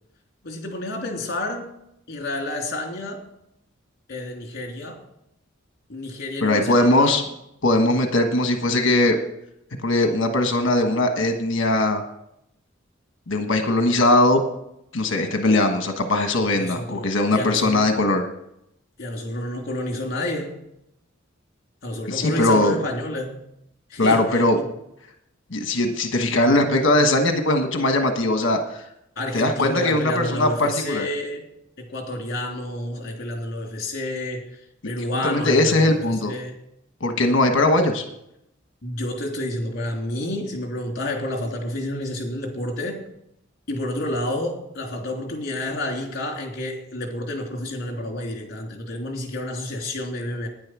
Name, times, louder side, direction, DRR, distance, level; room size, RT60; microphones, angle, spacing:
voice 1, 0.4-1.7 2.1-3.3 4.1-5.0 5.9-7.2 16.5-17.9 19.0-20.6 21.8-23.4 23.9-24.7 29.1-31.5 31.8-36.6 38.8-43.0 43.7-50.5, left 1 dB, 50° left, 1 dB, 3.1 m, -30 dB
voice 2, 6.4-7.2 7.6-9.2 9.8-12.0 13.3-14.4 14.9-18.2 22.1-22.7 24.0-24.6 25.5-28.8 29.3-31.1 35.2-36.3 37.0-38.0, left 2 dB, 65° left, 5 dB, 1.4 m, -20 dB
10.5 x 10.0 x 6.2 m, 0.80 s
head